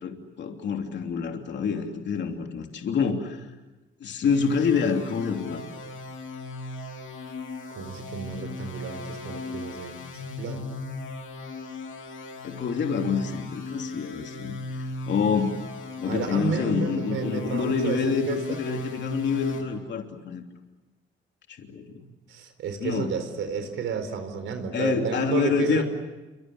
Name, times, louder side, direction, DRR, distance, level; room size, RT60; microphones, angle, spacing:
voice 1, 0.0-3.4 4.0-5.6 12.4-15.7 16.0-20.4 21.5-21.9 22.8-23.1 24.7-25.8, left 5 dB, 65° left, 3 dB, 3.1 m, -27 dB
sound 1, 4.2-19.6, left 2 dB, 85° left, 7.7 m, -37 dB
voice 2, 7.8-10.6 16.1-18.6 22.3-25.8, right 6 dB, 80° right, 8 dB, 4.3 m, -32 dB
29.0 x 25.5 x 8.0 m, 1.1 s
cardioid pair, 90°, 20 cm